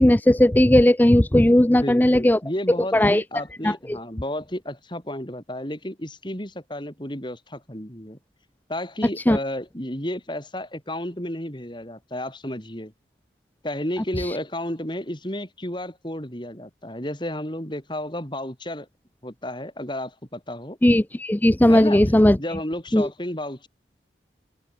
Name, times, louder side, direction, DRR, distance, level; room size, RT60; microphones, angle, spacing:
voice 1, 0.0-2.4 2.9-3.2 3.6-4.0 9.3-9.4 14.2-14.4 20.8-22.4 22.9-23.1, left 1 dB, 10° left, 0.5 m, -17 dB
voice 2, 1.7-8.2 8.7-12.9 13.6-18.9 19.2-20.8 21.7-22.0 22.3-23.7, left 1 dB, 25° left, 5.5 m, -32 dB
head